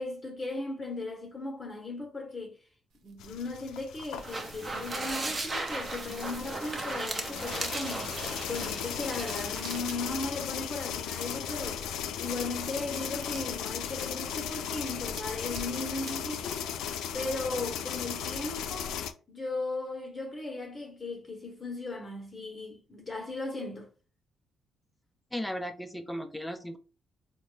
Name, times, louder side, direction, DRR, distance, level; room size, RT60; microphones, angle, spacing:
voice 1, 0.0-2.6 3.0-8.1 8.5-11.8 12.2-16.6 17.1-19.0 19.3-23.9, left 2 dB, 30° left, 0.9 m, -37 dB
sound 1, 2.9-17.5, right 5 dB, 75° right, 0.6 m, -54 dB
sound 2, 3.2-19.1, left 8 dB, 85° left, 0.4 m, -37 dB
sound 3, 4.1-9.9, right 2 dB, 30° right, 0.8 m, -36 dB
voice 2, 25.3-26.8, equal, 5° left, 0.6 m, -36 dB
4.0 x 2.2 x 3.2 m
cardioid pair, 90°, 0 cm